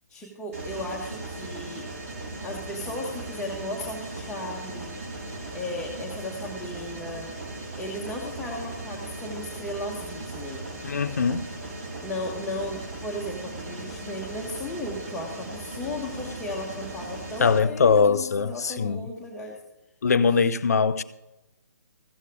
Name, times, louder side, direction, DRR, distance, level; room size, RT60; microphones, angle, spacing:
voice 1, 0.1-1.9 2.4-5.0 5.5-7.3 7.7-10.7 12.0-19.6, left 1 dB, 5° left, 1.5 m, -35 dB
Mechanisms, 0.5-17.6, right 2 dB, 50° right, 3.2 m, -38 dB
voice 2, 10.8-11.5 17.4-19.1 20.0-21.0, left 5 dB, 60° left, 0.5 m, -22 dB
14.5 x 8.1 x 4.9 m
figure-of-eight pair, 135°, 9 cm